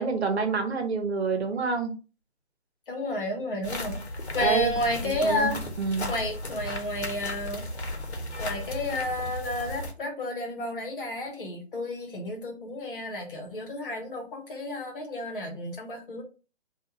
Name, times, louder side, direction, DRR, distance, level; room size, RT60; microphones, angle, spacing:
voice 1, 0.0-1.9 4.4-4.7 5.0-5.5 5.8-6.1, right 4 dB, 65° right, 0.9 m, -27 dB
voice 2, 2.9-4.0 4.3-5.6 6.1-7.7 8.4-16.2, left 1 dB, 50° left, 1.0 m, -31 dB
sound 1, 3.6-9.9, left 1 dB, 70° left, 1.0 m, -35 dB
2.5 x 2.3 x 4.0 m
figure-of-eight pair, 145°, 34 cm